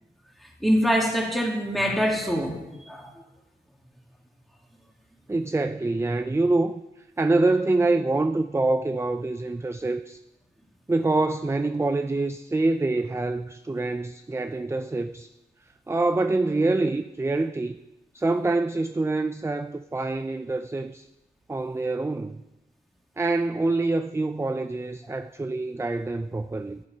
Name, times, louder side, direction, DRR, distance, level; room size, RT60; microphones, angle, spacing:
voice 1, 0.6-2.6 2.9-3.1, equal, ahead, 0 dB, 2.3 m, -24 dB
voice 2, 5.3-6.8 7.2-10.2 10.9-15.3 15.9-17.8 18.1-21.1 21.5-22.4 23.2-26.8, right 2 dB, 15° right, 10 dB, 0.4 m, -25 dB
14.0 x 10.5 x 5.5 m, 1.0 s
wide cardioid pair, 120°, 17 cm